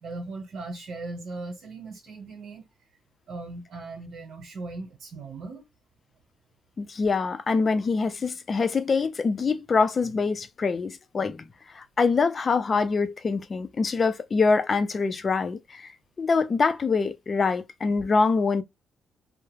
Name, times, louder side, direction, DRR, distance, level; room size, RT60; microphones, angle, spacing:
voice 1, 0.0-2.6 3.3-5.7, right 3 dB, 65° right, 0.9 m, -38 dB
voice 2, 6.8-11.5 11.7-15.9 16.2-18.6, left 4 dB, 40° left, 0.4 m, -24 dB
2.3 x 2.0 x 3.1 m
cardioid pair, 90°, 0 cm